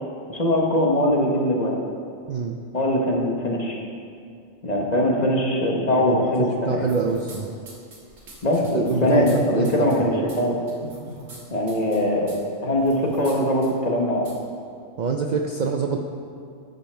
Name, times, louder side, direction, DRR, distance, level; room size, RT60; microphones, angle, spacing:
voice 1, 0.3-1.8 2.7-3.8 4.6-6.8 8.4-10.5 11.5-14.2, left 1 dB, 35° left, -1 dB, 1.1 m, -22 dB
voice 2, 6.0-7.5 8.7-10.2 15.0-16.0, right 5 dB, 55° right, 3 dB, 0.5 m, -26 dB
sound 1, 6.8-7.4 7.7-9.4 9.6-9.9 10.3-10.4 10.7-11.4 11.7-12.0 12.3-12.4 12.8-13.4 13.6-13.7 14.3-14.4, right 1 dB, 70° right, 1.9 m, -40 dB
12.0 x 5.5 x 4.4 m, 2.3 s
omnidirectional pair, 1.2 m